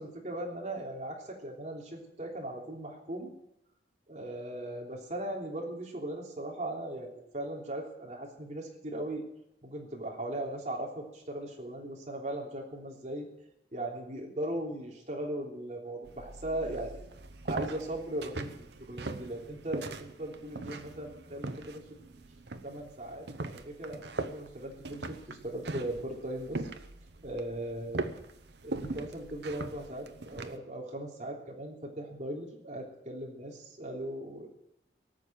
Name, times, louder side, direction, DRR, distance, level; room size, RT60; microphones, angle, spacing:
voice 1, 0.0-3.3 4.1-9.2 9.6-13.3 13.7-17.0 17.4-21.8 22.6-26.7 27.2-28.2 28.6-34.5, right 1 dB, 40° right, -1 dB, 3.3 m, -38 dB
sound 1, 16.0-30.6, right 2 dB, 75° right, 0.9 m, -41 dB
18.5 x 7.3 x 9.0 m, 0.81 s
head